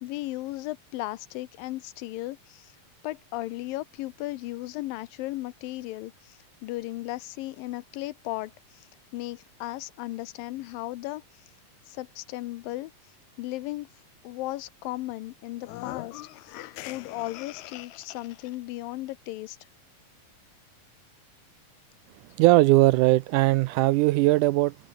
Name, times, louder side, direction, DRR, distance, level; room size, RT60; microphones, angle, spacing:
voice 1, 0.0-2.7 3.0-11.2 11.9-12.9 13.4-13.9 14.2-16.6 16.9-19.6, left 17 dB, 90° left, 2.6 m, -36 dB
sound 1, 15.6-18.6, left 15 dB, 70° left, 1.9 m, -42 dB
voice 2, 22.4-24.8, right 19 dB, 80° right, 1.9 m, -19 dB
omnidirectional pair, 3.9 m